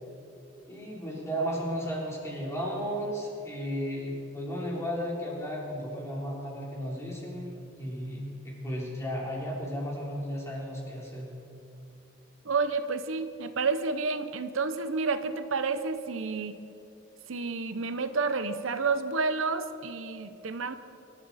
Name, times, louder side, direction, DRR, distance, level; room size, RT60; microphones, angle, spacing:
voice 1, 0.7-11.3, equal, 15° left, -4 dB, 3.8 m, -34 dB
voice 2, 12.4-16.6 17.3-20.8, right 4 dB, 85° right, 10 dB, 0.8 m, -30 dB
25.0 x 13.5 x 4.2 m, 2.7 s
head